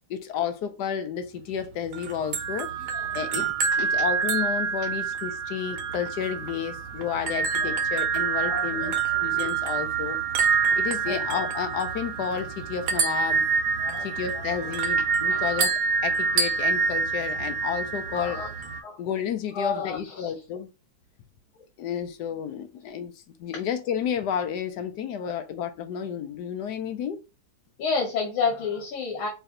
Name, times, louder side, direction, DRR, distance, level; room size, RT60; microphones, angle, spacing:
voice 1, 0.1-2.7 3.1-3.5 3.8-8.9 9.2-10.2 10.7-13.5 14.0-18.4 19.0-20.7 21.8-23.1 23.4-27.2, left 8 dB, 70° left, 1.1 m, -31 dB
sound 1, 1.9-18.8, right 6 dB, 85° right, 1.6 m, -27 dB
voice 2, 2.8-3.5 8.4-9.4 11.1-11.2 13.8-14.6 15.3-15.5 18.1-18.5 18.8-19.0 19.5-20.3 25.2-25.3 27.8-29.3, left 5 dB, 90° left, 2.0 m, -31 dB
4.8 x 2.7 x 3.8 m
omnidirectional pair, 2.2 m